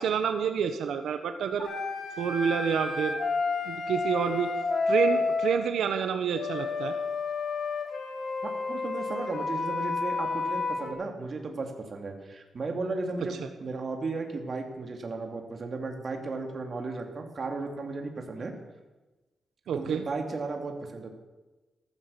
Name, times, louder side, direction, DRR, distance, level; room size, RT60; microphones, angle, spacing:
voice 1, 0.0-1.7 2.2-3.2 3.6-4.5 4.9-6.9 19.7-20.0, right 7 dB, 85° right, 7 dB, 1.2 m, -28 dB
sound 1, 1.6-5.6 6.3-10.9, left 3 dB, 60° left, 3.2 m, -30 dB
voice 2, 8.4-18.5 19.7-21.1, right 3 dB, 40° right, 3 dB, 2.5 m, -35 dB
15.0 x 14.0 x 7.0 m, 1.1 s
wide cardioid pair, 160°, 0 cm